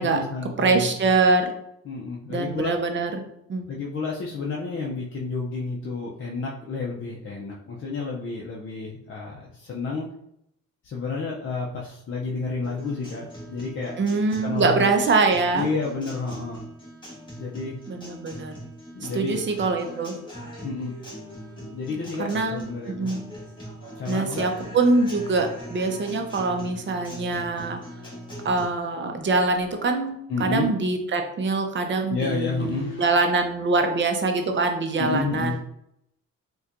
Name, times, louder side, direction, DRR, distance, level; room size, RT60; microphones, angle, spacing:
voice 1, 0.0-1.1 1.8-2.8 3.7-10.1 10.8-14.0 14.4-14.9 15.5-16.6 17.4-17.8 18.9-19.4 20.6-20.9 21.7-23.1 24.0-24.5 30.3-30.7 32.1-33.2 35.0-35.6, left 4 dB, 45° left, -3 dB, 0.5 m, -30 dB
voice 2, 0.6-1.5 2.3-3.2 3.5-3.6 14.0-15.7 17.9-18.5 19.1-20.1 22.2-23.2 24.1-27.8 28.4-35.6, right 3 dB, 40° right, 4 dB, 0.5 m, -24 dB
Guitar, 12.6-28.6, equal, 15° left, 1.4 m, -41 dB
4.1 x 2.3 x 2.5 m, 0.77 s
cardioid pair, 90°, 30 cm